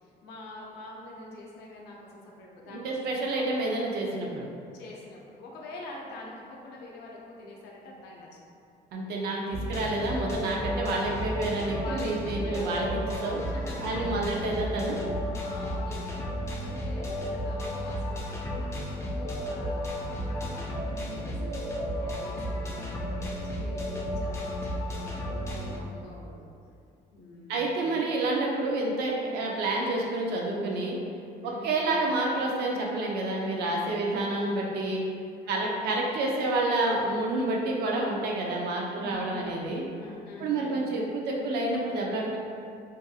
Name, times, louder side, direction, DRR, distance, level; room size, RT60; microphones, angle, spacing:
voice 1, 0.0-3.5 4.8-8.3 11.7-12.8 13.4-14.1 15.4-26.4 27.1-27.8 31.4-31.8 34.0-34.2 35.4-35.7 38.9-39.6 40.0-40.8, left 2 dB, 80° left, -2 dB, 0.5 m, -45 dB
voice 2, 2.7-4.5 8.9-12.9 13.2-13.4 13.8-15.0 27.5-31.0 31.4-35.0 35.5-39.8 40.4-42.4, right 2 dB, 70° right, -2 dB, 0.5 m, -29 dB
sound 1, 9.5-25.8, equal, 15° left, 0.3 m, -33 dB
2.6 x 2.5 x 2.3 m, 2.4 s
cardioid pair, 110°, 17 cm